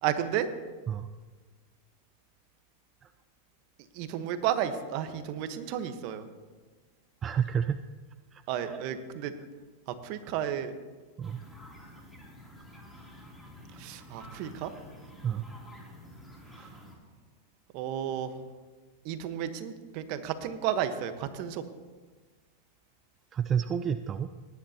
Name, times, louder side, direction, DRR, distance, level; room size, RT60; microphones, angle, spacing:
voice 1, 0.0-0.5 3.9-6.2 8.5-9.3 9.9-10.7 13.8-14.7 17.7-18.4 19.0-21.6, right 10 dB, 55° right, 9 dB, 1.1 m, -32 dB
voice 2, 7.2-7.8 8.3-8.8 11.2-11.4 15.2-15.4 16.6-16.7 23.3-24.3, right 8 dB, 30° right, 10 dB, 0.4 m, -30 dB
sound 1, 11.2-17.0, equal, 5° left, 2.9 m, -50 dB
19.0 x 10.5 x 2.9 m, 1.3 s
hypercardioid pair, 120°, 0 cm